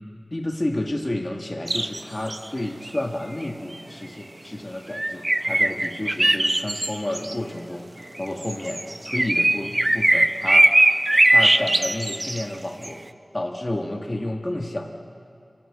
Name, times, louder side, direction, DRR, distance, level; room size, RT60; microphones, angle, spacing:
voice 1, 0.3-7.9 8.2-10.7 11.3-13.0 13.3-14.9, left 1 dB, 30° left, 2 dB, 1.6 m, -30 dB
sound 1, 1.7-2.0 2.3-2.4 2.9-3.0 4.9-7.3 8.2-12.4 12.8-12.9, right 1 dB, 30° right, 0.7 m, -20 dB
26.5 x 15.0 x 9.7 m, 2.4 s
wide cardioid pair, 65°, 0 cm